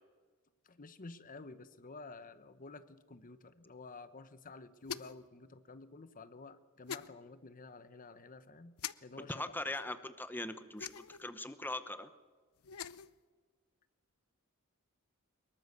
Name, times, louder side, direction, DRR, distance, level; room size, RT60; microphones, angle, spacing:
voice 1, 0.6-9.5, left 3 dB, 40° left, 13 dB, 0.9 m, -51 dB
sound 1, 4.8-5.3 6.9-7.1 8.8-8.9 10.8-11.2 12.6-13.1, left 8 dB, 80° left, 0.7 m, -43 dB
voice 2, 9.2-12.1, left 2 dB, 10° left, 11 dB, 0.8 m, -41 dB
24.0 x 21.5 x 6.8 m, 1.5 s
head